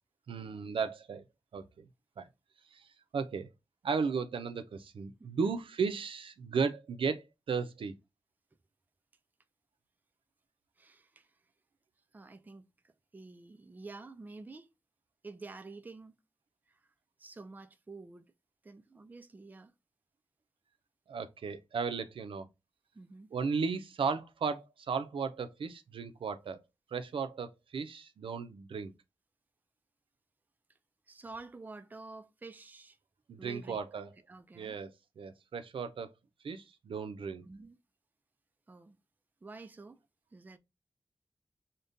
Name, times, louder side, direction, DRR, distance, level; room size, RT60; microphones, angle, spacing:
voice 1, 0.3-1.2 1.5-1.9 2.2-2.3 2.7-2.9 3.1-3.5 3.8-7.9 21.1-22.5 23.3-26.6 26.9-28.9 33.3-34.1 34.5-36.1 36.4-37.5, right 5 dB, 80° right, 0.4 m, -35 dB
voice 2, 10.8-11.3 12.1-14.7 15.2-16.2 16.7-16.8 17.2-18.3 18.6-19.7 22.9-23.3 31.1-33.0 33.4-33.8 34.3-34.8 37.4-37.8 38.7-39.0 39.4-40.0 40.3-40.6, right 3 dB, 20° right, 0.3 m, -49 dB
5.1 x 2.1 x 2.5 m
wide cardioid pair, 110°, 9 cm